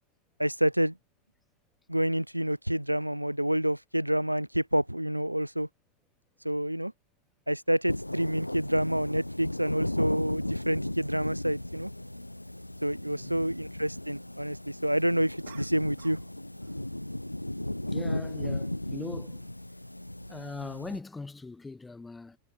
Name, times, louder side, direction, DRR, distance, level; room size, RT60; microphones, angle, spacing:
voice 1, 0.4-0.9 1.9-5.7 6.4-6.9 7.5-11.9 12.8-16.2, equal, 90° right, 0.4 m, -28 dB
sound 1, 7.9-21.0, left 1 dB, 85° left, 1.0 m, -35 dB
sound 2, 15.4-16.3 16.6-16.9, right 12 dB, 60° right, 2.9 m, -52 dB
voice 2, 17.9-19.5 20.3-22.4, left 3 dB, 10° left, 2.6 m, -41 dB
figure-of-eight pair, 90°, 0 cm